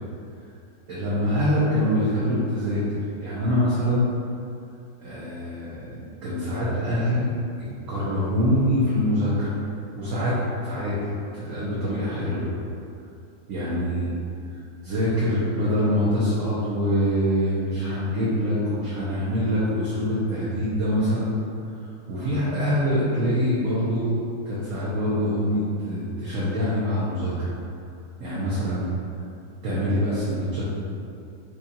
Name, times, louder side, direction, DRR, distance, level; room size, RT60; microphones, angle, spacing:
voice 1, 0.9-4.0 5.0-5.9 6.2-7.3 7.9-9.5 10.0-10.4 10.6-12.5 13.5-14.1 14.5-14.6 14.8-21.3 22.1-24.1 24.5-27.5 28.2-28.9 29.6-30.7, equal, 60° right, -9 dB, 0.9 m, -24 dB
4.7 x 2.3 x 2.7 m, 2.5 s
omnidirectional pair, 1.9 m